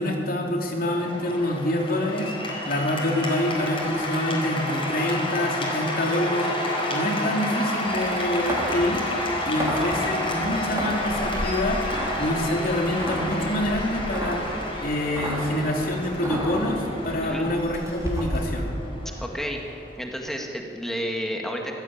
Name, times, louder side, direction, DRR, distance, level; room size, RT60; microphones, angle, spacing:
voice 1, 0.0-2.3 2.7-6.5 6.9-9.0 9.4-11.8 12.2-14.4 14.8-18.7, left 1 dB, 55° left, 1 dB, 3.1 m, -26 dB
Cheering / Applause, 0.8-20.1, left 1 dB, 30° left, 4.4 m, -30 dB
sound 1, 7.9-18.6, right 1 dB, 20° right, 3.9 m, -33 dB
voice 2, 19.2-19.6 20.0-21.7, equal, ahead, 1 dB, 2.0 m, -31 dB
24.5 x 15.5 x 8.7 m, 2.7 s
head